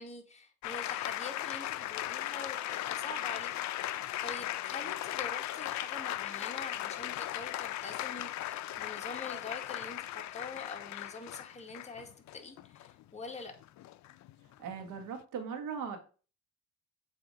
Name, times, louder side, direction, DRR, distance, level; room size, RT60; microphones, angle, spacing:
voice 1, 0.0-13.6, left 3 dB, 20° left, 3 dB, 1.5 m, -45 dB
sound 1, 0.6-15.1, left 14 dB, 70° left, 0.5 m, -37 dB
voice 2, 14.6-16.0, right 6 dB, 85° right, 5 dB, 1.4 m, -39 dB
7.5 x 2.8 x 5.1 m, 0.37 s
cardioid pair, 90°, 30 cm